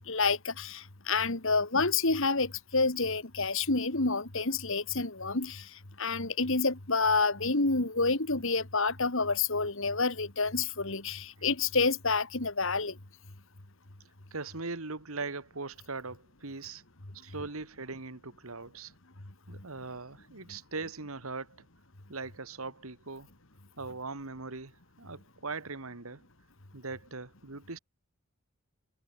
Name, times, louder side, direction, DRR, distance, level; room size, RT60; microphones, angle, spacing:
voice 1, 0.1-5.7 6.0-13.0, left 4 dB, 60° left, 2.1 m, -28 dB
voice 2, 14.3-16.8 17.1-18.9 19.5-21.6 22.1-23.3 23.8-24.7 25.0-26.2 26.7-27.8, right 3 dB, 70° right, 1.9 m, -40 dB
head